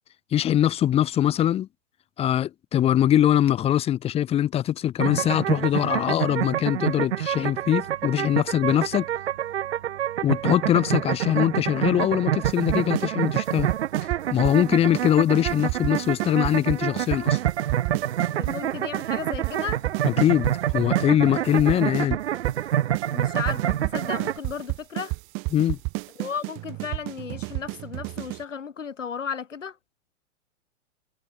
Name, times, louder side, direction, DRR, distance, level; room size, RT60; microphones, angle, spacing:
voice 1, 0.3-1.7 2.2-9.0 10.2-13.7 14.3-17.4 20.0-22.2 25.5-25.8, left 11 dB, 15° left, 1.0 m, -22 dB
sound 1, 5.0-24.4, right 11 dB, 55° right, 1.2 m, -27 dB
sound 2, 12.4-13.1 13.3-14.6 14.9-15.1 15.4-18.6 18.9-19.1 19.3-21.1 21.3-22.6 22.9-23.1 23.4-28.4, right 30 dB, 30° right, 2.1 m, -31 dB
voice 2, 18.4-19.8 23.1-25.2 26.2-29.8, left 6 dB, 75° left, 4.0 m, -34 dB
figure-of-eight pair, 115°, 38 cm